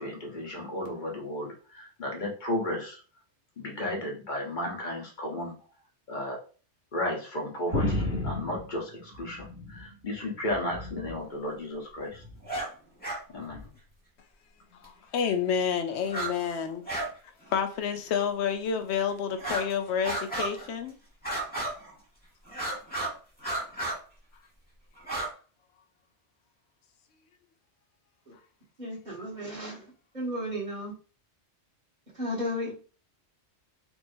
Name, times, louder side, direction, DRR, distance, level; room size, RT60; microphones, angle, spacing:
voice 1, 0.0-3.0 3.6-5.6 6.1-6.4 6.9-12.2 13.3-13.7, left 1 dB, 45° left, 1.1 m, -34 dB
sound 1, 7.7-9.9 10.3-11.2 12.1-12.5 13.5-13.7, left 1 dB, 60° right, 2.4 m, -33 dB
sound 2, 12.4-12.7 13.0-13.2 14.8-14.9 16.0-16.3 16.6-17.1 17.4-17.5 18.2-18.3 19.3-19.7 20.0-20.7 21.2-21.9 22.5-23.1 23.4-24.0 25.0-25.3, right 2 dB, 10° left, 1.2 m, -33 dB
voice 2, 14.8-16.8 17.5-21.0, left 7 dB, 70° left, 0.9 m, -29 dB
voice 3, 28.8-29.9 30.1-30.9 32.1-32.7, equal, 40° right, 2.3 m, -34 dB
4.7 x 2.7 x 2.6 m
omnidirectional pair, 1.2 m